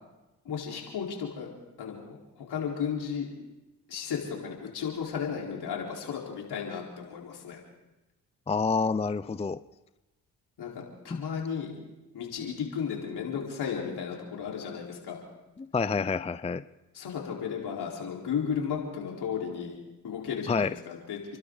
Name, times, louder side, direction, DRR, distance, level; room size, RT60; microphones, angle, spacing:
voice 1, 0.4-1.5 1.8-3.3 3.9-7.6 10.6-11.7 12.1-15.2 16.9-19.8 20.0-21.2, left 7 dB, 70° left, -2 dB, 4.6 m, -34 dB
voice 2, 8.5-9.6 11.1-11.2 15.6-16.6 20.5-20.7, left 4 dB, 15° left, 15 dB, 0.5 m, -28 dB
29.0 x 12.0 x 4.0 m, 1.0 s
supercardioid pair, 55°, 40 cm